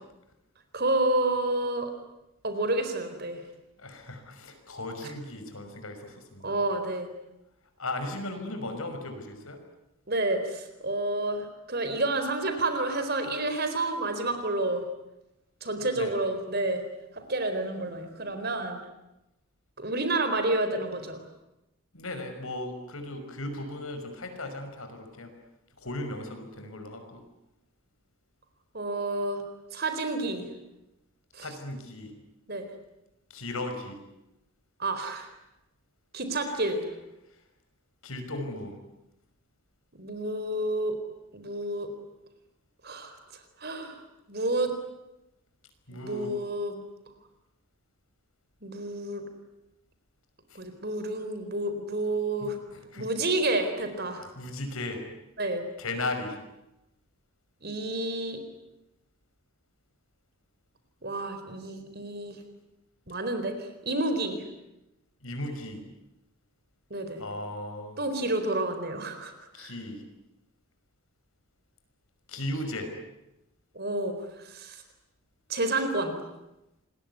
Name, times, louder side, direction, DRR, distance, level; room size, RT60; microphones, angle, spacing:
voice 1, 0.7-1.9 2.4-3.4 6.4-7.1 10.1-14.8 15.6-16.8 17.1-18.8 19.8-21.2 28.7-29.4 29.7-30.5 31.3-31.5 32.5-32.7 34.8-35.3 36.1-36.9 40.0-41.0 41.3-41.9 42.8-43.1 43.6-44.0 44.3-44.7 45.9-46.8 48.6-49.2 50.5-52.6 53.0-54.2 55.4-55.6 57.6-58.4 61.0-62.4 63.1-64.4 66.9-67.2 68.0-69.3 69.6-69.7 73.7-74.1 74.4-74.8 75.5-76.2, right 2 dB, 45° right, 8 dB, 4.2 m, -29 dB
voice 2, 3.8-6.6 7.8-9.6 15.8-16.1 21.9-25.3 25.8-27.2 31.4-32.1 33.3-34.0 36.5-36.6 38.0-38.8 45.9-46.3 50.5-50.6 52.4-53.1 54.2-55.0 55.8-56.4 65.2-65.8 67.2-68.0 69.5-70.0 72.3-72.9, left 2 dB, 75° left, 6 dB, 5.7 m, -36 dB
27.0 x 21.5 x 9.5 m, 0.92 s
head